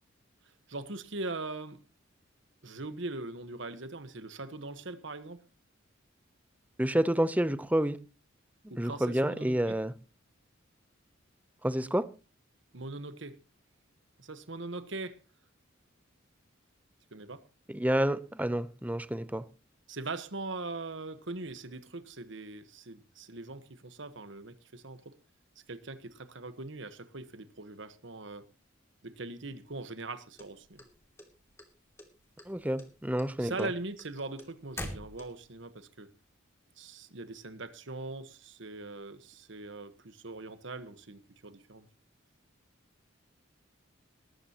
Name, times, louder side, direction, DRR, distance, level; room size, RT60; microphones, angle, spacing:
voice 1, 0.7-1.8 2.6-5.4 8.7-9.6 12.7-13.4 14.2-15.2 17.1-17.5 19.9-25.1 25.7-28.4 29.0-30.8 33.4-36.1 36.8-41.9, right 2 dB, 65° right, 1.3 m, -41 dB
voice 2, 6.8-8.0 8.8-9.9 11.6-12.1 17.7-19.4 32.5-33.7, right 1 dB, 10° right, 0.7 m, -29 dB
sound 1, 30.4-31.6 32.0-32.5 32.8-35.6, left 1 dB, 15° left, 2.7 m, -43 dB
19.0 x 14.0 x 3.0 m
head